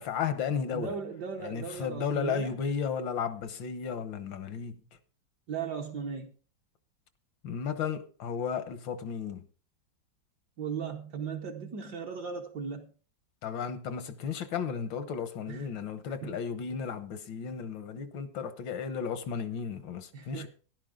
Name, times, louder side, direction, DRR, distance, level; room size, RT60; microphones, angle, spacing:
voice 1, 0.0-0.9 1.4-4.8 7.4-9.4 13.4-20.5, left 6 dB, 80° left, 1.7 m, -34 dB
voice 2, 0.7-2.6 5.5-6.3 10.6-12.9 15.5-15.7 16.2-16.4 20.1-20.5, right 6 dB, 65° right, 1.5 m, -37 dB
13.0 x 11.0 x 3.7 m
omnidirectional pair, 2.0 m